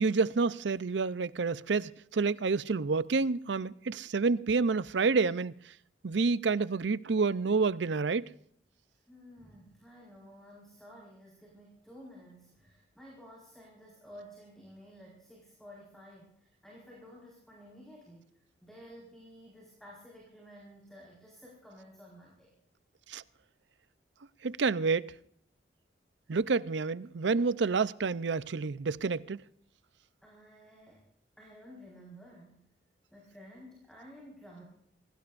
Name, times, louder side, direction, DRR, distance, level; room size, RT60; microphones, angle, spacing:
voice 1, 0.0-5.5 6.0-8.3 23.1-23.2 24.4-25.1 26.3-29.4, right 4 dB, 80° right, 0.6 m, -29 dB
voice 2, 8.9-18.3 18.6-22.5 30.2-31.0 31.4-32.6 33.1-34.6, equal, ahead, 4.7 m, -53 dB
26.0 x 17.0 x 2.6 m
head